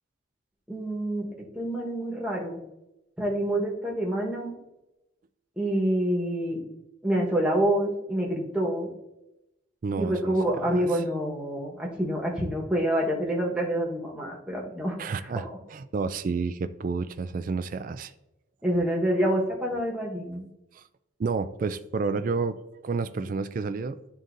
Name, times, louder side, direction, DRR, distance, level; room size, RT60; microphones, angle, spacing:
voice 1, 0.7-1.3 1.5-2.6 3.2-4.5 5.6-6.6 7.0-8.9 9.9-15.0 15.4-15.6 18.6-20.5, right 1 dB, 5° right, -3 dB, 1.2 m, -27 dB
voice 2, 9.8-10.3 10.6-10.9 15.0-18.1 20.7-20.8 21.2-22.6 22.8-24.0, right 4 dB, 40° right, 10 dB, 0.3 m, -30 dB
10.5 x 3.8 x 2.6 m, 0.91 s
head